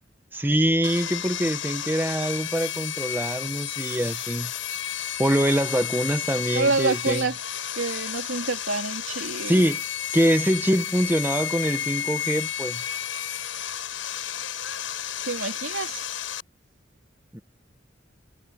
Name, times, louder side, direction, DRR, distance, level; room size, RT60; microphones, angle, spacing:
voice 1, 0.3-4.5 5.2-7.2 9.4-9.8 10.1-12.8 17.3-17.4, right 1 dB, 10° right, 1.1 m, -24 dB
Sawing, 0.8-16.4, left 10 dB, 80° left, 7.0 m, -32 dB
voice 2, 6.5-7.3 7.8-9.6 15.2-16.0, right 3 dB, 85° right, 2.8 m, -27 dB
head